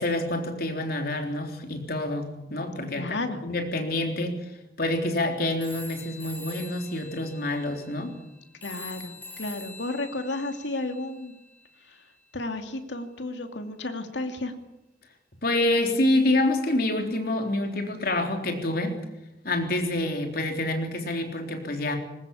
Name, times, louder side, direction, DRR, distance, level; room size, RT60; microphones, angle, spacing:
voice 1, 0.0-4.4 4.8-8.2 15.4-18.9 19.4-22.0, left 1 dB, 55° left, 4 dB, 3.7 m, -27 dB
voice 2, 3.0-3.4 8.6-11.3 12.3-14.5, left 2 dB, 85° left, 6 dB, 2.6 m, -32 dB
sound 1, 5.6-11.7, left 3 dB, 10° left, 4.1 m, -45 dB
21.0 x 19.5 x 8.5 m, 0.90 s
head